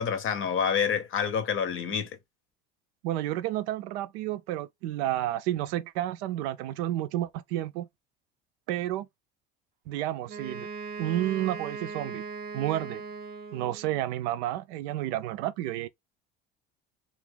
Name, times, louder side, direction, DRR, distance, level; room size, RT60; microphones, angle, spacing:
voice 1, 0.0-2.1, left 7 dB, 40° left, 0.7 m, -27 dB
voice 2, 3.0-7.9 8.7-9.1 9.9-10.7 11.0-12.3 12.5-13.0 13.5-15.9, right 13 dB, 75° right, 0.5 m, -31 dB
Wind instrument woodwind instrument, 10.3-14.0, right 4 dB, 30° right, 0.7 m, -39 dB
2.4 x 2.4 x 3.4 m
hypercardioid pair, 75°, 33 cm